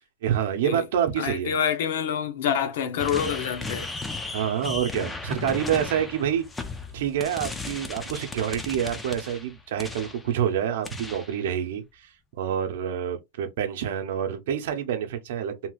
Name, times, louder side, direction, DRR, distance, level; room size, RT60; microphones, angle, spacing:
voice 1, 0.2-1.5 4.2-6.4 6.9-12.1 12.3-15.7, right 9 dB, 75° right, 0.6 m, -27 dB
voice 2, 1.2-3.9, left 8 dB, 75° left, 0.7 m, -27 dB
sound 1, 3.0-10.3 10.8-11.4, left 3 dB, 5° left, 0.4 m, -36 dB
3.1 x 2.8 x 2.3 m
supercardioid pair, 175°, 0 cm